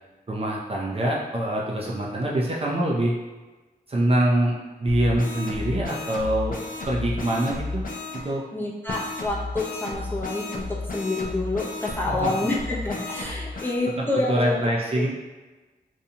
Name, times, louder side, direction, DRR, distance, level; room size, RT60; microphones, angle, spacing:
voice 1, 0.3-3.2 3.9-6.6 6.9-7.8 8.1-8.4 12.1-12.3 13.5-13.7 14.0-15.1, right 1 dB, 40° right, -3 dB, 0.5 m, -25 dB
sound 1, 4.8-8.2 8.9-13.8, left 3 dB, 60° left, 0.5 m, -33 dB
voice 2, 8.5-14.7 14.9-15.1, left 2 dB, 10° left, -4 dB, 0.6 m, -28 dB
2.6 x 2.2 x 2.8 m, 1.2 s
cardioid pair, 55°, 16 cm